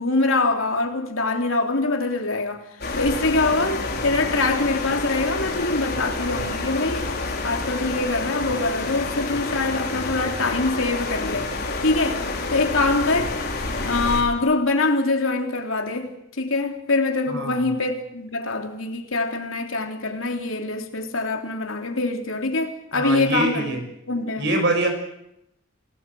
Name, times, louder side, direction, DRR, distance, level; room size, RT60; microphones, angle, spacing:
voice 1, 0.0-2.6 3.0-7.1 7.4-11.5 11.8-12.2 12.5-13.4 13.8-23.7 24.1-24.5, left 3 dB, 75° left, 3.5 m, -24 dB
sound 1, 2.8-14.2, left 3 dB, 50° left, 4.5 m, -28 dB
voice 2, 17.3-17.7 22.9-23.8 24.4-24.9, right 2 dB, 55° right, 6.2 m, -24 dB
28.5 x 18.0 x 7.8 m
head